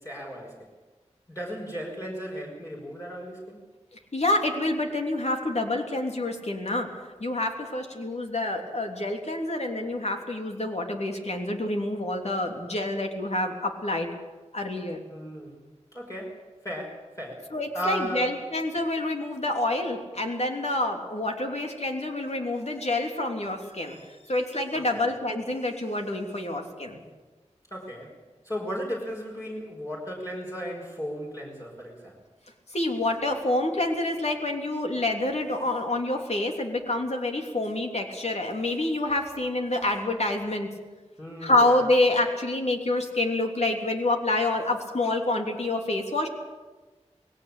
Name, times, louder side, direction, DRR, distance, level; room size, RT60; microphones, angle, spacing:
voice 1, 0.0-0.6 1.3-3.6 15.1-15.5 15.9-16.4 16.6-17.5 17.7-18.4 24.7-25.0 27.7-28.1 28.4-32.1 41.2-41.8, equal, 25° left, -3 dB, 5.6 m, -35 dB
voice 2, 4.1-6.9 7.2-14.1 14.5-15.0 17.5-24.0 24.3-27.0 32.7-40.7 41.4-46.3, left 2 dB, 60° left, 2 dB, 3.3 m, -27 dB
20.0 x 17.5 x 8.6 m, 1.2 s
wide cardioid pair, 45°, 12 cm